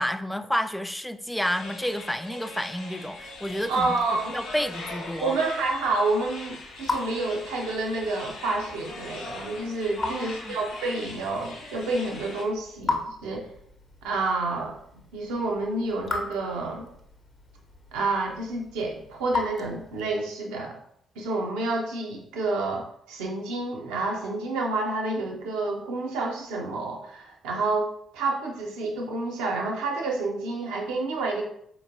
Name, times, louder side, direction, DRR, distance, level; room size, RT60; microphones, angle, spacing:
voice 1, 0.0-4.0 4.3-5.4 10.0-10.6, equal, 5° left, 10 dB, 0.3 m, -30 dB
sound 1, 1.4-12.4, left 2 dB, 70° left, 0.8 m, -41 dB
Raindrop / Drip, 3.1-20.3, left 3 dB, 40° left, 0.8 m, -38 dB
voice 2, 3.7-4.4 5.2-13.5 14.0-14.8 15.1-16.9 17.9-20.8 21.2-31.4, right 3 dB, 75° right, 0 dB, 0.6 m, -29 dB
4.2 x 3.0 x 2.6 m, 0.70 s
figure-of-eight pair, 40°, 0 cm